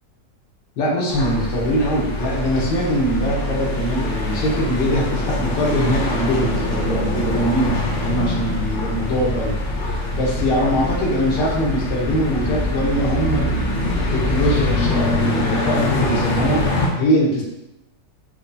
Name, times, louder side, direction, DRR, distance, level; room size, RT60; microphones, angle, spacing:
voice 1, 0.8-9.5 10.1-17.4, equal, 80° left, -3 dB, 1.5 m, -22 dB
sound 1, 1.1-16.9, left 1 dB, 65° left, 0.7 m, -23 dB
4.4 x 2.2 x 2.6 m, 0.89 s
omnidirectional pair, 1.9 m